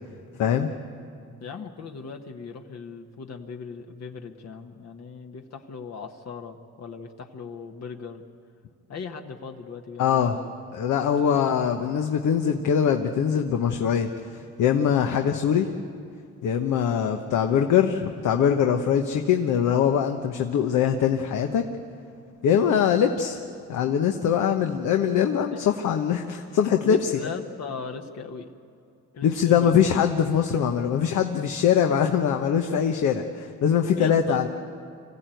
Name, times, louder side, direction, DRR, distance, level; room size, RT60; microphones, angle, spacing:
voice 1, 1.4-8.2 8.9-10.5 11.2-11.6 25.5-25.6 26.8-28.5 29.1-29.7 33.8-34.4, left 5 dB, 60° left, 4 dB, 1.5 m, -38 dB
voice 2, 10.0-10.4 10.7-15.7 16.4-21.7 22.4-23.4 23.7-27.3 29.2-34.5, left 8 dB, 80° left, 5 dB, 1.1 m, -22 dB
25.5 x 15.0 x 9.2 m, 2.4 s
cardioid pair, 90°, 30 cm